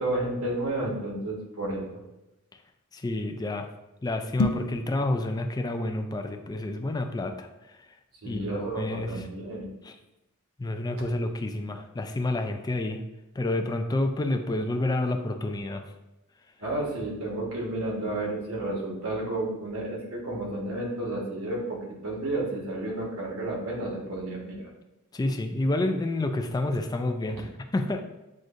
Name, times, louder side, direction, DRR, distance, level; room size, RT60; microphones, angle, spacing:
voice 1, 0.0-2.0 8.2-9.7 16.6-24.7, right 2 dB, 80° right, -3 dB, 1.3 m, -31 dB
voice 2, 2.9-3.7 4.0-7.8 8.3-9.2 9.8-10.0 10.6-13.0 13.4-15.8 25.1-28.0, left 2 dB, 20° left, 5 dB, 0.3 m, -29 dB
sound 1, 4.3-4.8, left 2 dB, 90° left, 0.4 m, -27 dB
7.5 x 2.6 x 2.5 m, 0.96 s
head